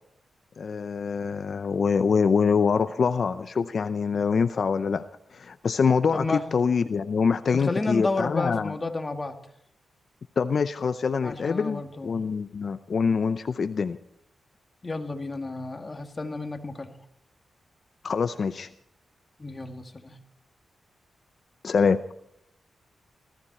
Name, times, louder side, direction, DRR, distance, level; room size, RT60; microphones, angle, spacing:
voice 1, 0.6-5.0 5.3-8.7 10.4-14.0 18.0-18.7 21.6-22.0, left 5 dB, 60° left, 11 dB, 0.6 m, -25 dB
voice 2, 6.1-6.4 7.5-9.4 11.2-12.2 14.8-16.9 19.4-20.2, left 3 dB, 30° left, 6 dB, 2.0 m, -31 dB
19.5 x 14.5 x 4.3 m, 0.75 s
cardioid pair, 70°, 0 cm